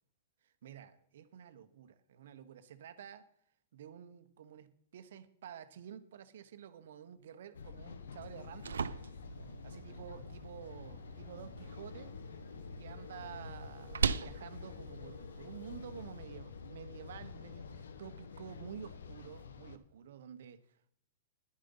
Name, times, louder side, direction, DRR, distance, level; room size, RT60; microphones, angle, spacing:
voice 1, 0.4-3.3 3.7-8.8 9.6-12.1 12.8-20.8, right 8 dB, 70° right, 1.1 m, -50 dB
sound 1, 7.5-19.8, left 5 dB, 80° left, 1.1 m, -48 dB
sound 2, 8.2-16.2, right 6 dB, 85° right, 0.6 m, -41 dB
10.5 x 10.0 x 5.5 m
hypercardioid pair, 120°, 0 cm